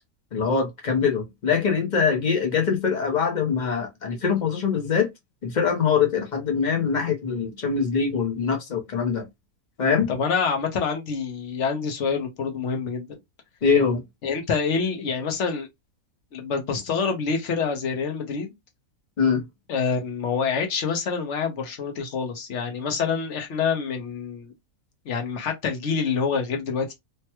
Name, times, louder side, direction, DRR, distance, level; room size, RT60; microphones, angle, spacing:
voice 1, 0.3-5.1 5.4-9.3 9.8-10.1 13.6-14.0 19.2-19.5, left 6 dB, 40° left, 0.7 m, -23 dB
voice 2, 10.1-13.2 14.2-15.7 16.3-18.5 19.7-24.5 25.1-26.9, left 5 dB, 60° left, 1.1 m, -26 dB
3.3 x 2.1 x 2.9 m
omnidirectional pair, 1.5 m